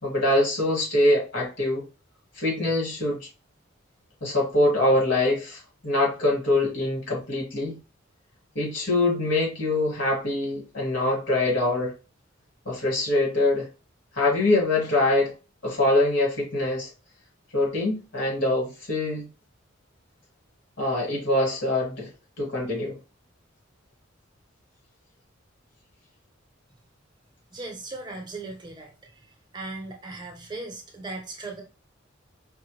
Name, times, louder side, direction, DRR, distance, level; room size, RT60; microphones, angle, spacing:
voice 1, 0.0-1.8 2.4-3.3 4.2-7.8 8.5-11.9 12.6-13.7 14.1-15.3 15.6-16.9 17.5-19.3 20.8-22.1 22.4-23.0, left 2 dB, 65° left, 2.4 m, -24 dB
voice 2, 27.5-28.9 29.5-31.6, right 2 dB, 20° right, 0.7 m, -37 dB
5.2 x 2.2 x 3.2 m
head